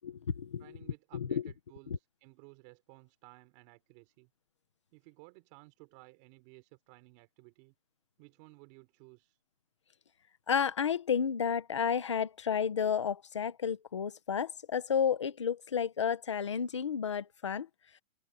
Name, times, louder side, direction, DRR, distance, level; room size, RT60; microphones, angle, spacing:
voice 1, 0.0-0.8 1.1-1.5 1.9-2.0 10.5-17.7, left 7 dB, 20° left, 0.6 m, -31 dB
voice 2, 0.6-4.3 4.9-7.7 8.2-9.4, right 25 dB, 20° right, 3.8 m, -57 dB
hypercardioid pair, 175°, 41 cm